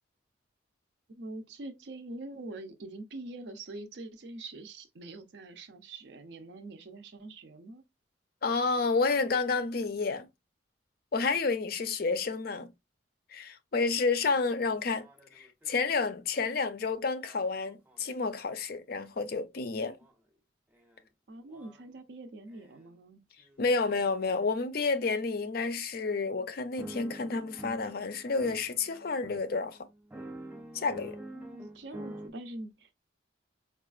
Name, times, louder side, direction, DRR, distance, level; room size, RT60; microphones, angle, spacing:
voice 1, 1.2-7.8 21.3-23.2 31.3-32.9, right 2 dB, 60° right, 0.5 m, -44 dB
voice 2, 8.4-10.3 11.1-12.7 13.3-15.1 15.3-20.0 23.6-29.8 30.7-31.2, left 4 dB, 50° left, 0.4 m, -30 dB
sound 1, 13.8-13.9 14.3-18.6 20.0-20.1 20.7-21.0 21.5-21.9 22.5-22.9 23.4-23.7 24.3-24.5 25.1-25.3 25.9-26.1 26.8-32.3, right 1 dB, 10° right, 0.4 m, -48 dB
4.9 x 2.4 x 2.3 m
head